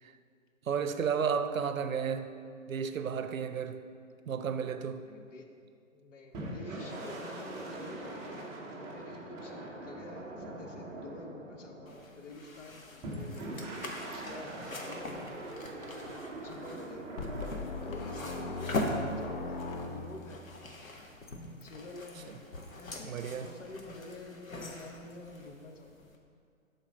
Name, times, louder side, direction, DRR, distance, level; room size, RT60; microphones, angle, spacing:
voice 1, 0.7-2.3 2.7-3.8 4.3-5.0 23.0-23.5, right 6 dB, 80° right, 0.6 m, -32 dB
voice 2, 5.0-5.5 5.9-15.3 16.0-17.1 17.8-20.5 21.6-22.4 22.8-26.0, left 2 dB, 65° left, 1.0 m, -48 dB
sound 1, 6.3-12.2 13.0-17.5, right 2 dB, 10° right, 0.5 m, -42 dB
sound 2, 11.9-26.2, left 2 dB, 85° left, 1.1 m, -42 dB
sound 3, 17.2-20.4, left 3 dB, 40° left, 0.7 m, -39 dB
12.0 x 4.1 x 4.0 m
figure-of-eight pair, 130°, 40 cm